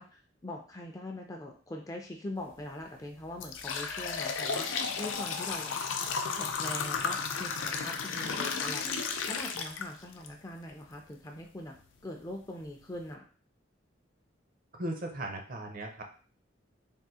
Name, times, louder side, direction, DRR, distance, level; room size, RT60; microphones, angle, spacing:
voice 1, 0.0-5.7 6.3-9.0 9.3-11.8 12.0-13.3, left 1 dB, 15° left, 2 dB, 0.4 m, -42 dB
sound 1, 2.5-2.6 3.1-10.3 10.7-10.8 11.7-11.8 12.3-12.4 12.8-13.1, left 5 dB, 80° left, 0.4 m, -33 dB
voice 2, 14.7-16.0, right 1 dB, 45° right, 3 dB, 0.6 m, -37 dB
3.5 x 2.4 x 2.7 m, 0.40 s
head